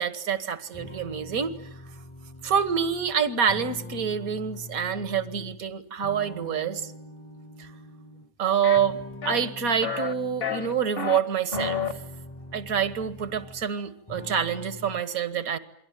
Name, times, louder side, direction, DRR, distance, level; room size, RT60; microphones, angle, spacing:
voice 1, 0.0-1.5 2.4-6.9 7.6-7.7 8.4-9.0 9.3-11.8 12.5-15.6, right 7 dB, 75° right, 12 dB, 1.9 m, -27 dB
sound 1, 0.7-5.6 6.0-8.3 8.8-10.9 11.3-13.8 14.1-15.0, left 1 dB, 20° left, 1.1 m, -43 dB
sound 2, 8.6-8.8 9.2-9.5 9.8-10.1 10.4-11.2 11.5-11.9, left 6 dB, 40° left, 1.6 m, -30 dB
28.5 x 22.5 x 9.2 m, 0.73 s
omnidirectional pair, 1.5 m